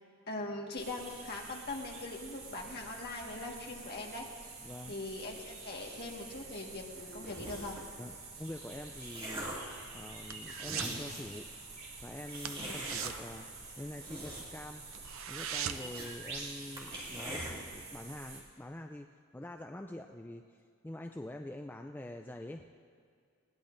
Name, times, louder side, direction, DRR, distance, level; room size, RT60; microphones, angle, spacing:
voice 1, 0.3-4.3 4.9-7.8 12.6-12.8, left 2 dB, 50° left, 0 dB, 1.6 m, -41 dB
sound 1, 0.8-18.4, right 3 dB, 45° right, 2.7 m, -47 dB
voice 2, 4.6-5.0 8.0-9.6 9.9-11.5 12.0-13.5 13.8-14.8 15.3-19.1 19.3-22.7, left 1 dB, 10° left, 4 dB, 0.3 m, -45 dB
sound 2, 7.2-7.9 8.6-9.7 10.3-10.4 10.6-11.4 12.3-13.1 13.8-14.7 15.0-15.1 15.4-16.1 16.4-16.5 16.8-17.5, right 1 dB, 20° right, 2.5 m, -42 dB
sound 3, 9.6-11.0 11.3-11.6 11.9-12.0 12.4-14.2 14.6-14.7 14.9-16.0 16.4-16.5, right 9 dB, 70° right, 0.5 m, -41 dB
20.0 x 17.5 x 2.6 m, 2.2 s
head